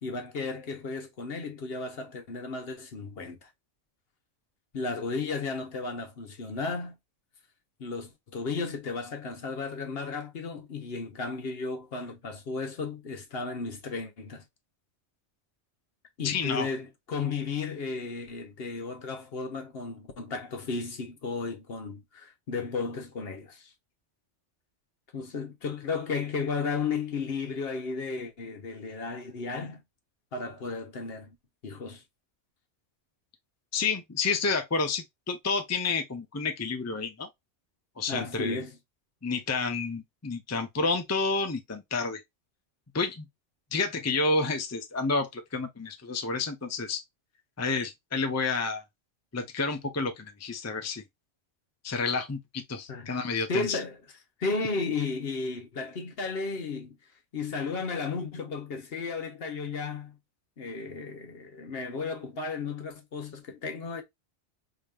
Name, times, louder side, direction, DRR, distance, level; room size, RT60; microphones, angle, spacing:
voice 1, 0.0-3.5 4.7-6.9 7.8-14.4 16.2-23.7 25.1-29.8 30.3-31.3 31.6-32.0 38.1-38.8 52.9-53.2 53.5-54.0 54.4-57.0 57.3-60.2 60.6-64.0, left 4 dB, 55° left, 1.1 m, -34 dB
voice 2, 16.2-16.7 33.7-37.3 38.0-38.6 39.2-42.2 42.9-43.2 43.7-47.0 47.6-48.8 49.3-51.0 51.8-53.8, left 4 dB, 15° left, 0.6 m, -30 dB
5.0 x 2.8 x 2.4 m
omnidirectional pair, 1.2 m